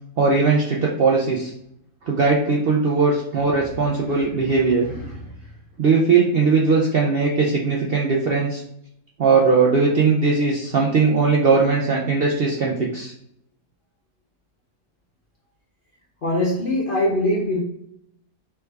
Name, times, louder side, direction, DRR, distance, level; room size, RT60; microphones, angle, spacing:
voice 1, 0.2-1.5 2.1-4.9 5.8-8.6 9.2-13.1, right 4 dB, 85° right, -2 dB, 0.5 m, -19 dB
voice 2, 16.2-17.6, left 1 dB, 75° left, -2 dB, 0.5 m, -21 dB
3.3 x 3.3 x 3.3 m, 0.74 s
omnidirectional pair, 1.7 m